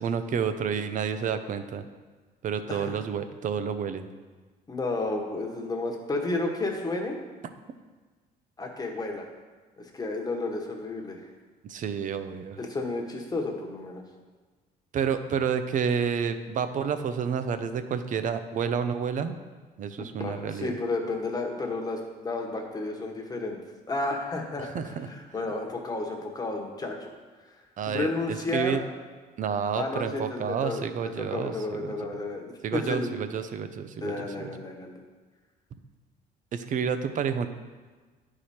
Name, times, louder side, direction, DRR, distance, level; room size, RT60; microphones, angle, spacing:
voice 1, 0.0-1.8 2.4-4.1 11.7-12.6 14.9-19.4 19.8-20.7 24.6-25.1 27.8-28.8 29.4-31.9 32.6-34.5 36.5-37.5, right 7 dB, 50° right, 10 dB, 0.6 m, -30 dB
voice 2, 4.7-7.2 8.6-9.3 9.8-11.3 12.6-14.0 20.0-23.6 23.9-24.7 25.0-27.1 27.9-28.8 29.7-33.1 34.0-35.0, left 2 dB, 20° left, 1 dB, 1.3 m, -32 dB
10.5 x 4.9 x 4.3 m, 1.4 s
cardioid pair, 110°, 17 cm